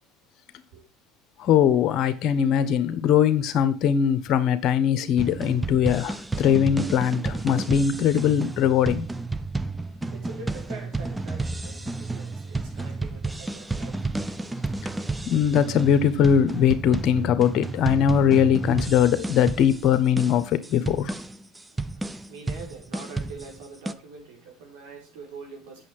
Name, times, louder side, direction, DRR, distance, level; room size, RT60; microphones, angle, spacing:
voice 1, 1.4-9.1 15.3-21.1, left 8 dB, 55° left, 1.2 m, -21 dB
sound 1, 5.2-23.9, right 3 dB, 15° right, 0.8 m, -31 dB
voice 2, 9.7-15.6 21.7-25.9, right 3 dB, 80° right, 4.5 m, -44 dB
8.5 x 6.8 x 4.7 m
hypercardioid pair, 80°, 0 cm